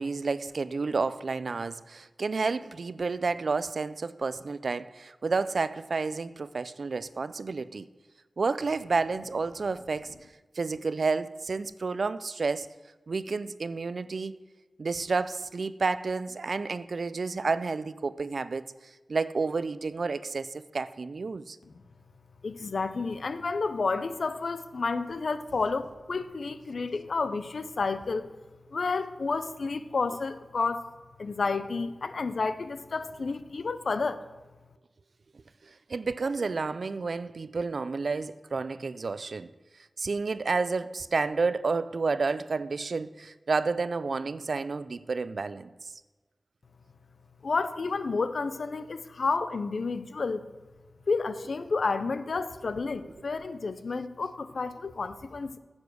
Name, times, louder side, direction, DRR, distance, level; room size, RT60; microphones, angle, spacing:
voice 1, 0.0-7.9 8.4-10.1 10.5-12.7 13.1-14.4 14.8-18.6 19.1-21.6 35.7-39.5 40.0-45.9 53.0-53.1, right 4 dB, 70° right, 0.4 m, -30 dB
voice 2, 22.4-28.3 28.7-30.9 31.2-34.2 47.4-50.4 51.1-55.6, left 4 dB, 80° left, 0.6 m, -30 dB
9.6 x 7.1 x 6.2 m
wide cardioid pair, 90°, 0 cm